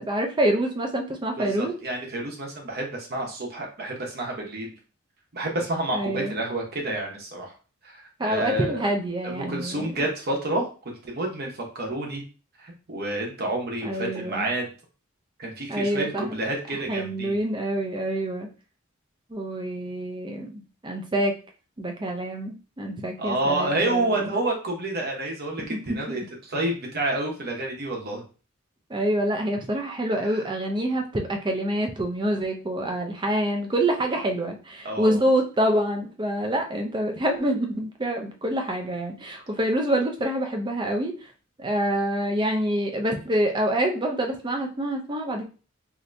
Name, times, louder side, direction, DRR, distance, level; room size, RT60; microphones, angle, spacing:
voice 1, 0.0-1.7 5.9-6.4 8.2-9.9 13.8-14.5 15.7-16.3 16.9-18.5 19.3-21.3 21.8-24.4 25.7-26.2 28.9-41.3 41.6-45.4, right 1 dB, 20° right, 3 dB, 0.5 m, -26 dB
voice 2, 1.4-4.7 5.3-7.5 7.8-8.9 9.2-12.2 12.6-14.7 15.4-17.4 23.2-28.2 30.3-30.4 34.8-35.2, right 2 dB, 50° right, 0 dB, 0.9 m, -29 dB
2.8 x 2.6 x 3.3 m, 0.36 s
head